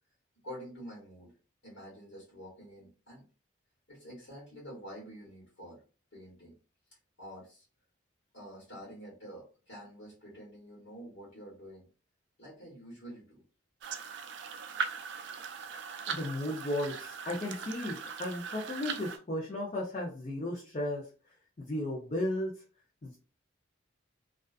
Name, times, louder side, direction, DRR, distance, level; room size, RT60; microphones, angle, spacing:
voice 1, 0.4-1.3 1.6-3.2 3.9-5.8 6.1-6.5 7.2-7.6 8.3-11.9 12.4-13.4, equal, 75° left, -4 dB, 1.2 m, -48 dB
sound 1, 13.8-19.2, right 6 dB, 60° right, 0.3 m, -39 dB
voice 2, 15.8-21.0 21.6-22.6 23.0-23.2, left 1 dB, 35° left, -4 dB, 0.5 m, -35 dB
2.4 x 2.3 x 2.3 m, 0.36 s
head